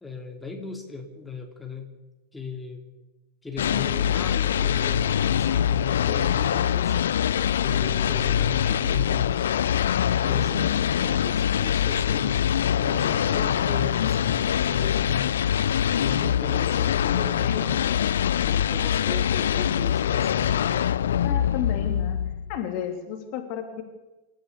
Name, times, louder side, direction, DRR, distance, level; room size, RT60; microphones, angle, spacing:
voice 1, 0.0-1.9 2.3-2.8 3.4-7.0 7.6-9.5 10.1-12.3 12.8-15.4 15.9-18.0 18.5-20.8, left 3 dB, 10° left, 2 dB, 3.4 m, -37 dB
sound 1, 3.6-22.6, left 9 dB, 65° left, 0.7 m, -24 dB
voice 2, 10.3-10.7 12.9-13.1 21.2-22.2 22.5-23.8, left 9 dB, 45° left, 5 dB, 3.3 m, -32 dB
27.5 x 14.0 x 7.1 m, 1.1 s
figure-of-eight pair, 90°, 0 cm